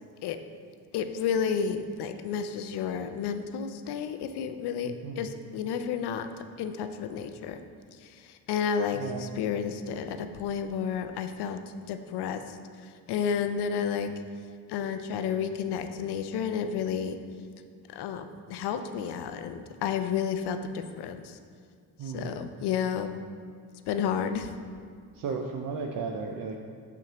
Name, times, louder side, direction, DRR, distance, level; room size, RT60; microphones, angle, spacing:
voice 1, 0.9-6.3 6.6-7.6 8.0-11.6 11.9-14.1 14.7-17.2 17.9-21.4 22.0-23.1 23.9-24.5, left 7 dB, 65° left, 9 dB, 0.6 m, -31 dB
voice 2, 4.8-5.3 8.9-9.3 22.0-22.3 25.1-26.6, right 5 dB, 50° right, 2 dB, 0.5 m, -34 dB
6.1 x 5.7 x 3.0 m, 2.1 s
cardioid pair, 85°, 42 cm